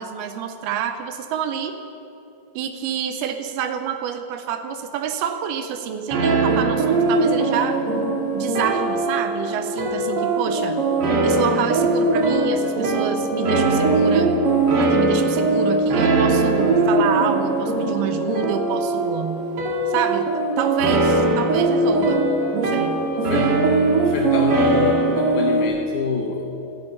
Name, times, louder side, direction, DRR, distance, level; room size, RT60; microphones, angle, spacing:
voice 1, 0.0-1.8 2.6-7.8 8.3-10.8 11.2-14.4 14.8-19.5 19.9-22.2 22.5-23.1, right 8 dB, 85° right, 8 dB, 2.7 m, -27 dB
sound 1, 6.1-25.7, right 2 dB, 50° right, 1.9 m, -20 dB
voice 2, 23.2-23.5 24.0-26.4, left 6 dB, 75° left, 2 dB, 1.8 m, -26 dB
16.0 x 13.0 x 5.4 m, 2.8 s
omnidirectional pair, 4.5 m